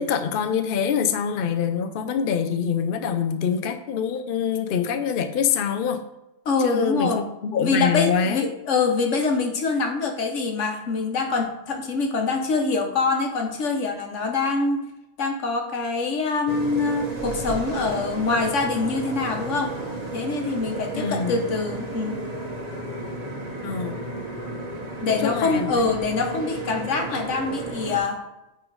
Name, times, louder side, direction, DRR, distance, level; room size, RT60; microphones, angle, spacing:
voice 1, 0.0-6.0 6.6-8.5 20.9-21.4 23.6-24.0 25.1-25.8, left 7 dB, 55° left, 8 dB, 0.7 m, -25 dB
voice 2, 6.4-7.2 7.6-14.9 15.2-19.7 20.1-22.2 25.0-28.2, left 4 dB, 75° left, 4 dB, 1.4 m, -24 dB
sound 1, 16.5-28.0, right 2 dB, 35° right, 1.1 m, -33 dB
9.0 x 3.7 x 4.6 m, 0.94 s
omnidirectional pair, 1.3 m